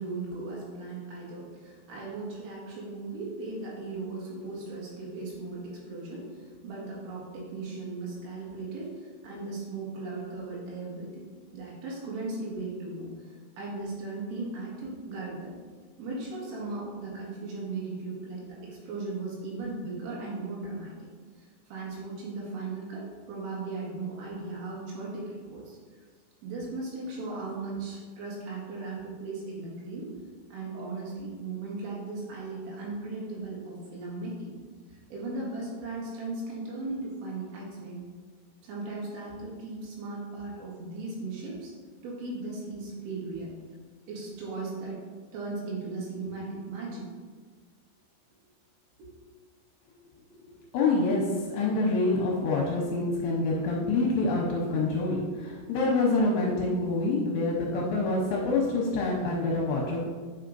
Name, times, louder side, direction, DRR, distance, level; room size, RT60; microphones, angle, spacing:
voice 1, 0.0-11.3 11.5-15.6 16.0-21.1 21.4-25.8 26.4-30.1 30.5-34.5 34.9-38.1 38.6-41.7 42.0-43.5 44.1-45.0 45.3-47.1 49.0-49.1, right 3 dB, 80° right, -5 dB, 4.3 m, -37 dB
voice 2, 50.4-60.0, left 3 dB, 75° left, -3 dB, 2.8 m, -26 dB
9.2 x 5.7 x 2.6 m, 1.5 s
omnidirectional pair, 5.8 m